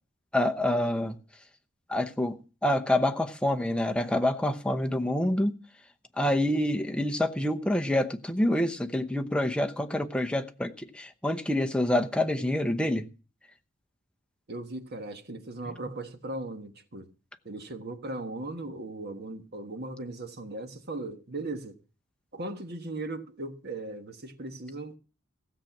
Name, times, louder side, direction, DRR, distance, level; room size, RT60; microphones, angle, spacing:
voice 1, 0.3-1.1 1.9-2.4 2.6-5.5 6.2-13.0, left 1 dB, 5° left, 0.8 m, -27 dB
voice 2, 14.5-17.1 17.4-21.8 22.3-25.0, right 2 dB, 55° right, 1.4 m, -38 dB
16.0 x 7.6 x 6.0 m
head